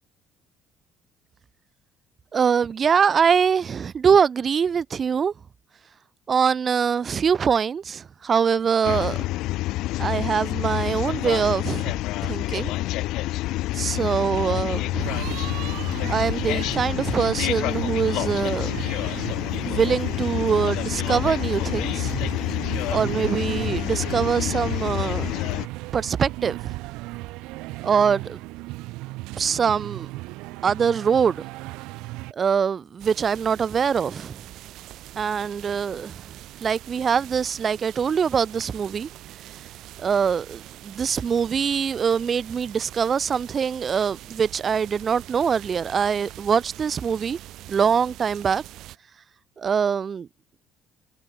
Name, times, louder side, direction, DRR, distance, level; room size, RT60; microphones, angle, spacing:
voice 1, 2.3-5.3 6.3-9.2 10.0-11.9 12.2-12.7 13.7-15.2 16.1-18.8 19.6-22.2 22.9-25.3 25.9-26.8 27.8-28.4 29.4-30.1 30.6-31.4 32.3-34.4 35.2-36.2 36.6-39.1 40.0-47.4 47.7-48.6 49.6-50.3, right 6 dB, 25° right, 0.4 m, -23 dB
sound 1, 8.8-25.7, left 17 dB, 70° left, 0.4 m, -28 dB
sound 2, 15.0-32.3, right 22 dB, 85° right, 0.6 m, -35 dB
sound 3, 33.0-49.0, right 14 dB, 55° right, 3.3 m, -43 dB
cardioid pair, 165°, 0 cm